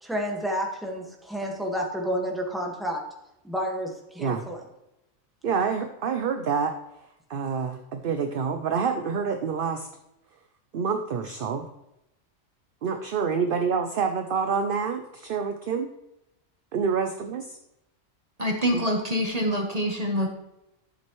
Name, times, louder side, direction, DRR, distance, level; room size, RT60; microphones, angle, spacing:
voice 1, 0.0-3.0 3.4-4.6, equal, ahead, 0 dB, 1.5 m, -30 dB
voice 2, 5.4-6.7 7.3-9.9 10.7-11.7 12.8-15.9 16.7-17.6 18.7-18.8, right 6 dB, 55° right, 6 dB, 0.7 m, -27 dB
voice 3, 18.4-20.3, equal, 30° right, 1 dB, 1.1 m, -25 dB
12.0 x 7.5 x 3.1 m, 0.89 s
omnidirectional pair, 1.3 m